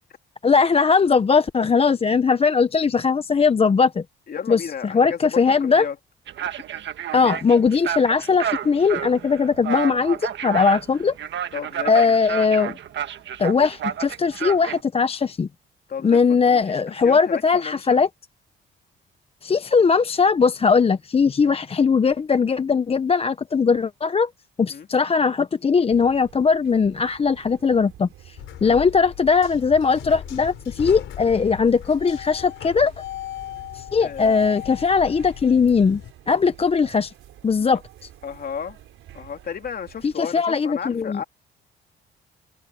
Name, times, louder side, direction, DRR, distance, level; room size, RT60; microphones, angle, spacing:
voice 1, 0.4-4.0 4.5-5.9 7.1-11.1 11.9-12.8 13.4-15.5 16.0-18.1 19.4-24.3 24.6-32.9 33.7-36.0 36.3-37.1 37.4-37.8 40.0-41.2, left 5 dB, 30° left, 0.7 m, -19 dB
voice 2, 4.3-6.0 6.4-6.6 7.1-7.2 11.5-12.1 15.9-16.2 16.5-18.0 21.4-21.6 24.7-24.9 28.7-28.9 34.0-34.4 38.2-38.8 39.1-41.2, left 7 dB, 50° left, 3.1 m, -34 dB
sound 1, 6.3-14.8, right 9 dB, 65° right, 1.5 m, -30 dB
sound 2, 25.9-40.2, right 13 dB, 85° right, 4.5 m, -49 dB
sound 3, 28.4-36.1, left 12 dB, 75° left, 4.6 m, -37 dB
open air
cardioid pair, 90°, 20 cm